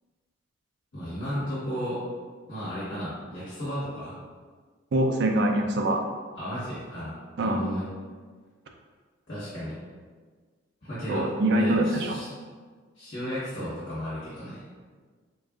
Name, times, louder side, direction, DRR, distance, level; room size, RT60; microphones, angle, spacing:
voice 1, 0.9-2.0 2.5-4.1 6.4-7.8 9.3-9.7 10.8-12.3 13.0-14.6, equal, 60° left, -13 dB, 1.3 m, -34 dB
voice 2, 4.9-6.0 7.4-7.6 11.1-12.2, right 1 dB, 55° right, 3 dB, 0.4 m, -24 dB
3.9 x 2.5 x 2.3 m, 1.5 s
head